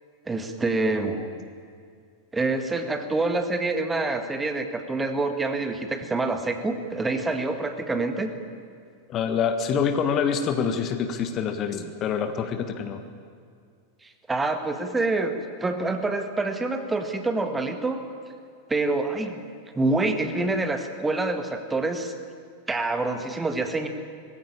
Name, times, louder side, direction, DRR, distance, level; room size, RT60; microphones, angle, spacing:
voice 1, 0.3-1.1 2.3-8.3 14.0-18.0 18.7-19.4 19.8-22.1 22.7-23.9, right 2 dB, 10° right, 7 dB, 2.0 m, -26 dB
voice 2, 9.1-13.0, left 6 dB, 35° left, 8 dB, 1.6 m, -26 dB
20.5 x 16.0 x 10.0 m, 2.2 s
figure-of-eight pair, 90°, 0 cm